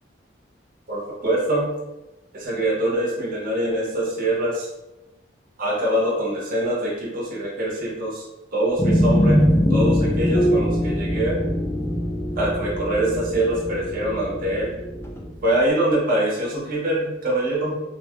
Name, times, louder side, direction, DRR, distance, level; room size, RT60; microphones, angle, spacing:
voice 1, 0.9-1.7 2.3-4.7 5.6-8.2 8.5-9.4 9.7-11.4 12.4-14.7 15.4-17.7, right 1 dB, 45° right, -4 dB, 0.6 m, -24 dB
sound 1, 8.8-15.4, equal, 15° left, 0.3 m, -22 dB
2.7 x 2.2 x 2.9 m, 1.0 s
head